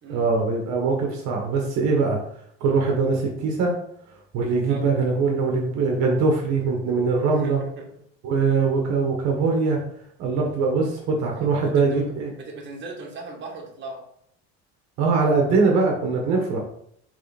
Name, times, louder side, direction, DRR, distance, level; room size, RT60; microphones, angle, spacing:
voice 1, 0.1-2.2 2.6-3.7 4.3-7.6 8.2-9.8 10.2-12.3 15.0-16.6, right 4 dB, 65° right, 0 dB, 1.3 m, -22 dB
voice 2, 7.3-7.9 11.6-12.1 12.4-14.0, right 3 dB, 35° right, -1 dB, 1.8 m, -38 dB
6.7 x 3.6 x 4.2 m, 0.69 s
cardioid pair, 160°, 30 cm